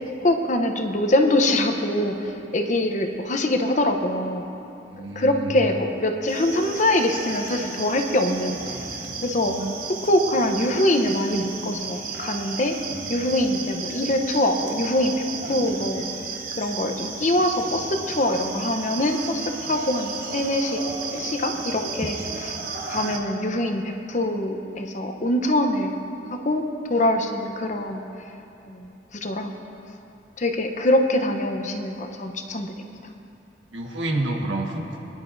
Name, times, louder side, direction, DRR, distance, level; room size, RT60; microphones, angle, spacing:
voice 1, 0.2-4.5 5.1-9.6 10.0-12.8 13.1-16.0 16.6-20.8 21.1-22.5 22.9-25.9 26.3-28.0 28.6-29.5 30.4-32.9, left 1 dB, 40° left, 5 dB, 0.8 m, -24 dB
voice 2, 4.9-5.5 9.4-9.7 33.7-35.0, right 2 dB, 80° right, 0 dB, 1.6 m, -29 dB
sound 1, 6.3-23.2, right 4 dB, 50° right, 1.2 m, -34 dB
24.0 x 10.5 x 2.7 m, 2.8 s
head